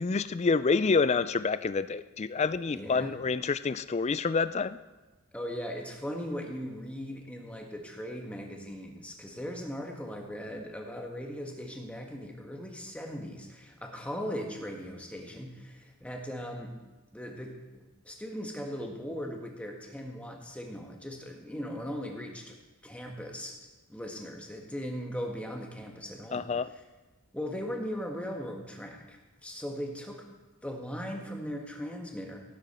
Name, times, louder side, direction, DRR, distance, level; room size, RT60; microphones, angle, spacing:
voice 1, 0.0-4.8 26.3-26.7, left 4 dB, 30° left, 15 dB, 0.3 m, -28 dB
voice 2, 2.7-3.2 5.3-16.7 17.1-22.6 22.8-23.6 23.9-26.8 27.3-30.3 30.6-32.4, equal, 5° left, 1 dB, 1.4 m, -39 dB
17.0 x 9.2 x 4.3 m, 1.2 s
head